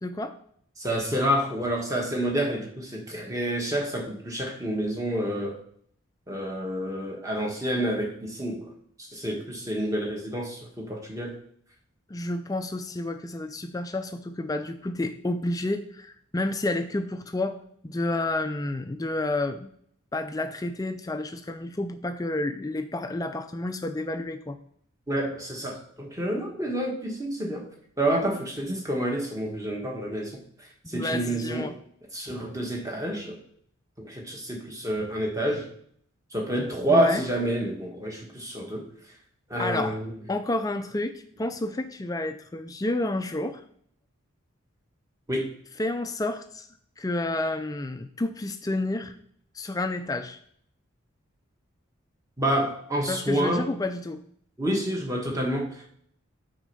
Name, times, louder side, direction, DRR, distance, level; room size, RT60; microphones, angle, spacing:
voice 1, 0.0-0.3 12.1-19.7 20.1-24.6 30.8-31.8 36.9-37.2 39.6-40.0 40.3-43.6 45.8-46.7 47.0-49.2 49.5-50.4 53.1-54.2, left 2 dB, 15° left, 8 dB, 0.3 m, -30 dB
voice 2, 0.8-5.6 6.3-8.7 9.0-11.4 25.1-27.7 28.0-31.7 32.1-33.4 34.0-35.7 36.3-38.9 39.5-40.1 45.3-45.5 52.4-53.7 54.6-55.9, right 1 dB, 15° right, 0 dB, 1.2 m, -28 dB
6.2 x 4.3 x 5.3 m, 0.64 s
head